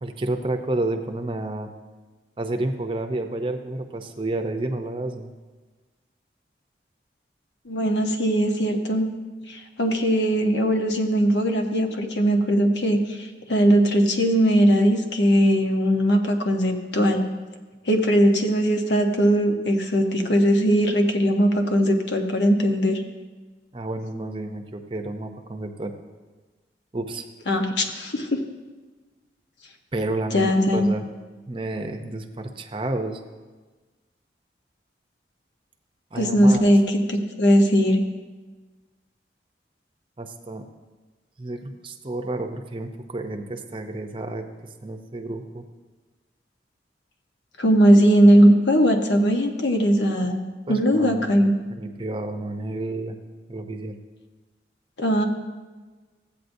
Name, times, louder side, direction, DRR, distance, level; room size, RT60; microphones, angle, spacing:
voice 1, 0.0-1.7 2.4-5.3 23.7-25.9 26.9-27.2 29.9-31.1 31.5-33.2 36.1-36.6 40.2-40.7 41.4-44.5 44.8-45.6 50.7-53.2 53.5-54.0, right 2 dB, 30° right, 4 dB, 0.6 m, -30 dB
voice 2, 7.7-9.1 9.5-13.0 13.5-17.2 17.9-23.0 27.5-28.4 30.3-30.9 36.1-36.8 37.1-38.0 47.6-50.4 50.7-51.5 55.0-55.2, equal, 80° left, 4 dB, 1.0 m, -19 dB
14.0 x 8.5 x 2.6 m, 1.3 s
head